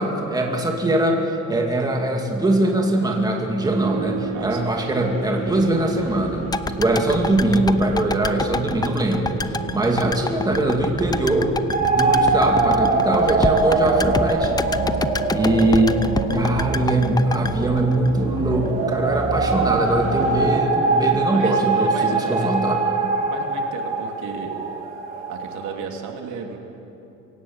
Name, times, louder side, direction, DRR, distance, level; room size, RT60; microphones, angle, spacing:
voice 1, 0.0-6.4 6.8-9.3 9.7-11.6 11.9-14.6 15.3-16.0 16.3-22.8, right 1 dB, 15° right, 1 dB, 2.4 m, -21 dB
sound 1, 3.6-20.6, right 6 dB, 55° right, 1.5 m, -32 dB
voice 2, 4.3-4.7 15.1-15.3 21.3-22.5 23.3-24.5 25.3-26.6, right 6 dB, 85° right, 2 dB, 3.0 m, -34 dB
sound 2, 6.5-18.7 19.0-19.1, left 3 dB, 15° left, 0.5 m, -28 dB
sound 3, 11.7-25.7, right 3 dB, 30° right, 4.1 m, -23 dB
24.0 x 17.0 x 8.9 m, 2.9 s
cardioid pair, 155°, 29 cm